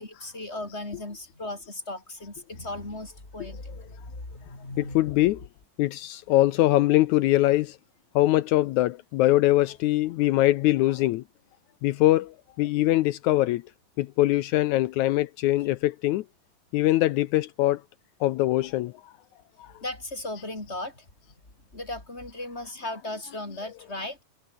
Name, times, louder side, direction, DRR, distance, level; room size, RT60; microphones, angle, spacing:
voice 1, 0.0-5.0 19.8-21.0 21.7-24.2, left 2 dB, 15° left, 4.4 m, -36 dB
voice 2, 4.8-5.4 5.8-7.8 8.1-11.2 11.8-13.6 14.0-16.2 16.7-17.8 18.2-18.9 19.6-19.7 23.3-23.4, left 16 dB, 80° left, 1.7 m, -22 dB
omnidirectional pair, 4.0 m